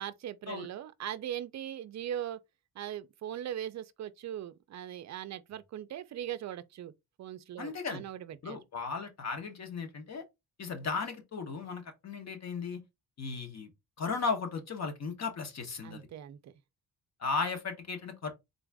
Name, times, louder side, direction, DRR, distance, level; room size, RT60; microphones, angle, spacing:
voice 1, 0.0-2.4 2.8-6.9 7.2-8.6 15.8-16.6, right 11 dB, 50° right, 0.5 m, -40 dB
voice 2, 7.6-8.0 8.4-10.2 10.6-12.8 13.2-13.7 14.0-16.0 17.2-18.3, left 4 dB, 45° left, 1.0 m, -36 dB
3.9 x 2.4 x 3.4 m
cardioid pair, 130°, 37 cm